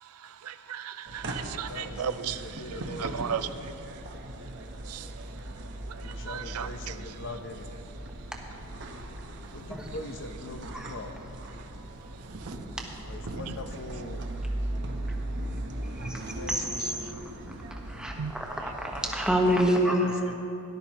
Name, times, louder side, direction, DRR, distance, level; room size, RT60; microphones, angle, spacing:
voice 1, 0.2-3.7 4.9-5.1 6.0-7.1 12.4-12.6 16.8-16.9 18.2-18.3 18.6-18.7, right 7 dB, 80° right, 0.5 m, -36 dB
sound 1, 1.1-19.6, right 1 dB, 55° right, 1.0 m, -38 dB
voice 2, 1.6-3.5 5.9-7.7 9.5-11.2 12.0-12.1 13.0-14.2 16.3-17.0 19.8-20.3, left 2 dB, 55° left, 0.8 m, -42 dB
voice 3, 18.0-20.1, equal, 5° right, 1.2 m, -26 dB
17.5 x 12.0 x 3.0 m
head